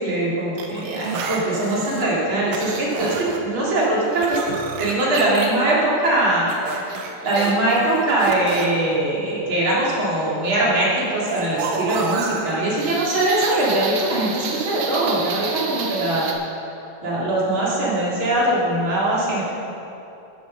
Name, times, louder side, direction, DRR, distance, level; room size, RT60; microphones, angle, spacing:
voice 1, 0.0-6.9 7.2-16.3 17.0-19.4, right 1 dB, 35° right, -7 dB, 3.5 m, -21 dB
sound 1, 0.6-2.0 2.5-3.4 3.8-5.5 6.5-8.7 11.3-16.3, right 5 dB, 70° right, 2.6 m, -30 dB
13.5 x 10.5 x 5.4 m, 2.8 s
omnidirectional pair, 4.4 m